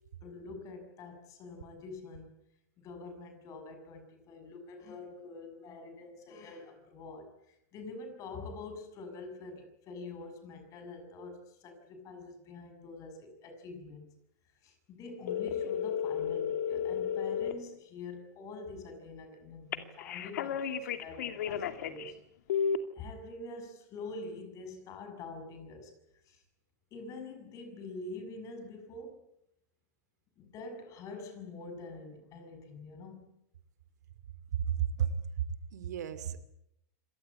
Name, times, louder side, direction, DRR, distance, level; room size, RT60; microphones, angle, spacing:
voice 1, 0.2-2.4 2.8-14.1 14.6-22.2 22.9-25.9 26.2-26.4 26.9-29.3 30.4-33.3, left 3 dB, 35° left, 7 dB, 6.7 m, -46 dB
sound 1, 15.3-17.5 19.7-22.1 22.5-22.8, left 8 dB, 75° left, 2.4 m, -33 dB
voice 2, 34.7-35.2 35.7-36.4, right 9 dB, 80° right, 13 dB, 2.7 m, -32 dB
26.5 x 19.0 x 8.6 m, 0.78 s
hypercardioid pair, 120°, 9 cm